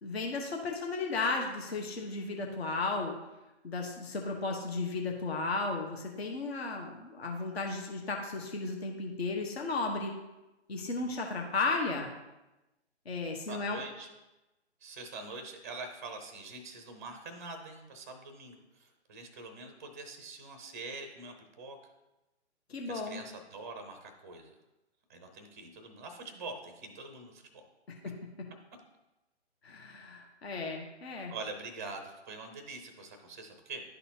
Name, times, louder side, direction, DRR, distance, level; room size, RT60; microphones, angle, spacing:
voice 1, 0.0-3.1 3.6-10.1 10.7-12.1 13.0-13.8 22.7-23.2 28.0-28.1 29.6-31.3, left 3 dB, 60° left, 2 dB, 1.1 m, -34 dB
voice 2, 13.5-14.1 14.8-21.8 22.9-24.5 25.1-27.6 31.2-33.8, right 3 dB, 15° right, 6 dB, 0.5 m, -44 dB
11.0 x 4.2 x 2.8 m, 1.0 s
figure-of-eight pair, 140°, 35 cm